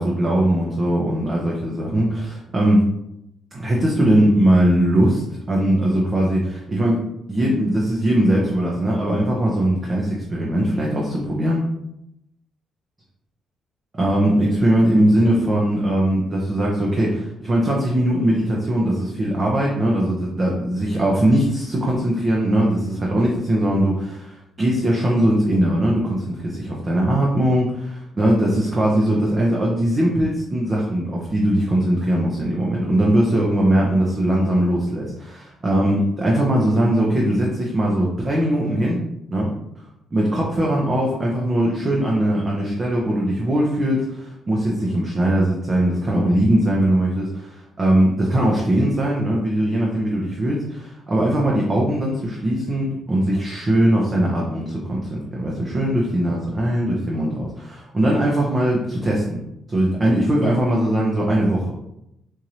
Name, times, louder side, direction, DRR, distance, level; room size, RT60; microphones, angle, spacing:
voice 1, 0.0-2.8 3.5-11.6 14.0-39.0 39.3-39.5 40.1-59.4 59.7-61.7, right 1 dB, 30° right, -3 dB, 0.7 m, -20 dB
4.5 x 2.6 x 3.0 m, 0.83 s
cardioid pair, 90°, 0 cm